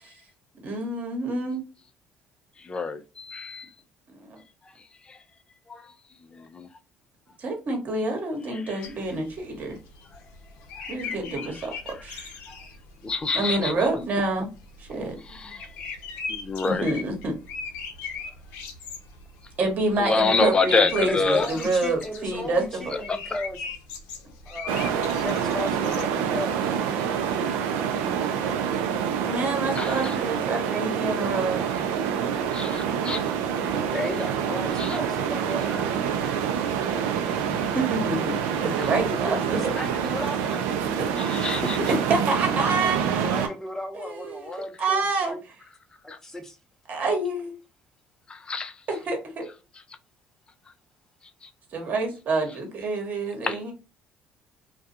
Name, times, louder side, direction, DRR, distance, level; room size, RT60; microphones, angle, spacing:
voice 1, 0.6-1.6 4.2-4.4 7.4-9.7 10.9-11.7 12.0-12.3 13.3-14.5 14.8-15.2 16.6-17.3 19.6-22.8 26.7-26.8 29.2-31.6 37.7-38.3 38.6-39.6 41.0-41.1 41.9-43.5 43.9-45.3 46.9-47.6 48.9-49.5 51.7-53.7, right 3 dB, 50° right, 1.1 m, -27 dB
voice 2, 2.6-3.7 5.1-5.2 5.7-5.9 6.3-6.7 8.5-8.8 10.8-11.2 11.4-11.6 12.5-12.6 13.0-13.7 15.3-15.6 16.3-16.9 20.0-21.5 23.1-23.4 29.8-30.2 32.5-33.3 34.8-35.0 41.1-41.9 46.1-46.2 48.3-48.7 51.4-51.5 53.4-53.6, left 4 dB, 30° left, 0.4 m, -27 dB
sound 1, 8.8-26.0, left 5 dB, 80° left, 0.6 m, -40 dB
voice 3, 21.1-23.6 24.5-24.8 25.2-26.6 33.9-35.9 38.9-40.8 43.1-45.4 46.0-46.6, left 1 dB, 15° left, 0.8 m, -34 dB
sound 2, 24.7-43.5, right 8 dB, 80° right, 0.4 m, -26 dB
2.3 x 2.3 x 2.7 m
supercardioid pair, 75°, 3 cm